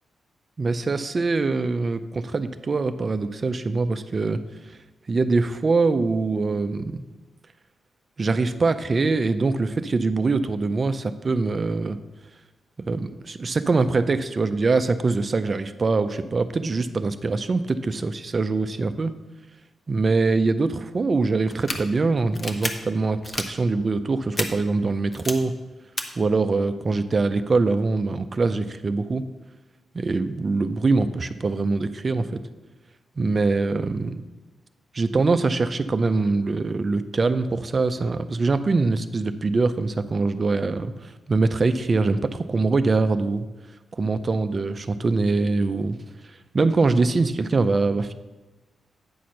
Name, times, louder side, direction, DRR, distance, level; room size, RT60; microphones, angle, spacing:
voice 1, 0.6-4.4 5.1-7.0 8.2-12.0 12.9-19.1 19.9-25.5 26.2-29.2 29.9-32.4 33.2-34.2 34.9-43.5 44.0-46.0 46.5-48.1, right 3 dB, 35° right, 10 dB, 0.4 m, -23 dB
sound 1, 21.5-21.8 22.3-22.7 23.2-23.5 24.3-24.5 25.1-25.3 26.0-26.1, left 2 dB, 30° left, 0.8 m, -29 dB
9.2 x 4.3 x 6.3 m, 1.1 s
wide cardioid pair, 120°, 0 cm